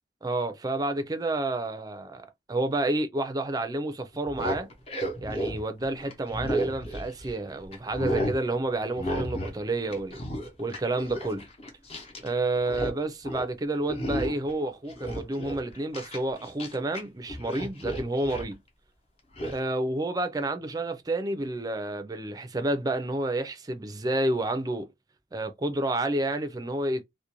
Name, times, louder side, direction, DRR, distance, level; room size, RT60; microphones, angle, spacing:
voice 1, 0.2-4.7 5.2-10.2 10.6-11.4 12.2-18.6 19.5-24.9 25.3-27.0, right 2 dB, 20° right, 0.4 m, -30 dB
sound 1, 4.1-7.4 7.7-8.4 9.0-9.6 9.8-12.3 12.5-13.0 13.2-13.5 13.9-14.5 14.9-17.0 17.3-18.5 19.4-19.6, equal, 35° left, 0.8 m, -33 dB
2.5 x 2.1 x 2.9 m
head